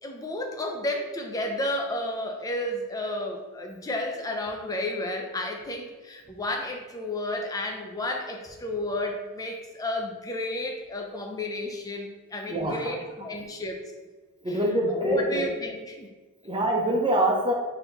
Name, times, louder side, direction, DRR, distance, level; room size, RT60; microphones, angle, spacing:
voice 1, 0.0-13.8 14.9-16.1, left 1 dB, 15° left, 2 dB, 0.5 m, -32 dB
voice 2, 12.5-12.8 14.4-15.4 16.4-17.5, right 1 dB, 25° right, -1 dB, 0.7 m, -25 dB
4.1 x 2.9 x 3.9 m, 1.3 s
head